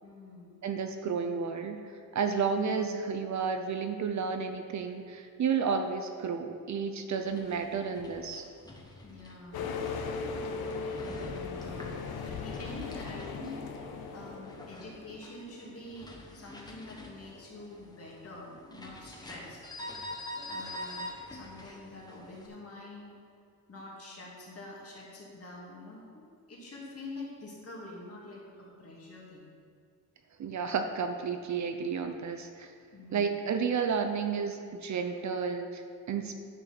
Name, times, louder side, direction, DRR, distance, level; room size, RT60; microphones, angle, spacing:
voice 1, 0.0-0.6 2.5-2.6 8.9-9.7 11.0-19.6 19.9-20.1 20.4-23.2 23.7-29.4 32.9-33.4 34.9-35.1, left 2 dB, 40° left, -3 dB, 2.4 m, -46 dB
voice 2, 0.6-8.4 30.4-32.7 33.1-36.3, right 6 dB, 50° right, 6 dB, 0.6 m, -32 dB
sound 1, 7.1-22.5, left 1 dB, 10° left, 1.0 m, -46 dB
sound 2, 9.5-15.1, left 4 dB, 80° left, 0.9 m, -38 dB
10.0 x 6.1 x 6.0 m, 2.3 s
wide cardioid pair, 170°, 36 cm